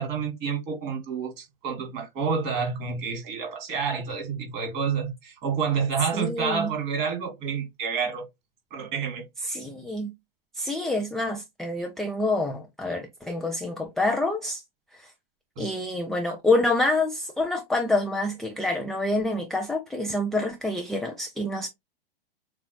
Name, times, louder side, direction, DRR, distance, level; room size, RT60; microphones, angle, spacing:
voice 1, 0.0-8.2 8.7-9.2 15.6-15.7, right 6 dB, 35° right, 2.6 m, -29 dB
voice 2, 6.1-6.7 9.4-10.1 10.6-14.6 14.9-15.1 15.6-21.7, left 2 dB, ahead, 0.4 m, -27 dB
6.7 x 2.4 x 3.1 m
figure-of-eight pair, 100°, 29 cm